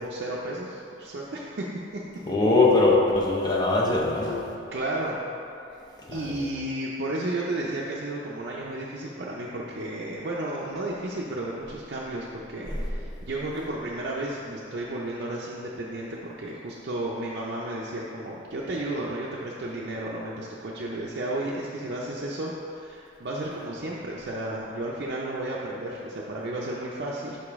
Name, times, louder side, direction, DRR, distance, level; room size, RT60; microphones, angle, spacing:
voice 1, 0.0-2.0 4.7-5.2 6.1-27.4, right 1 dB, 60° right, -5 dB, 0.5 m, -33 dB
voice 2, 2.3-4.5 6.1-6.4 12.7-12.8, left 2 dB, 20° left, -3 dB, 0.7 m, -22 dB
5.9 x 5.0 x 3.5 m, 2.6 s
head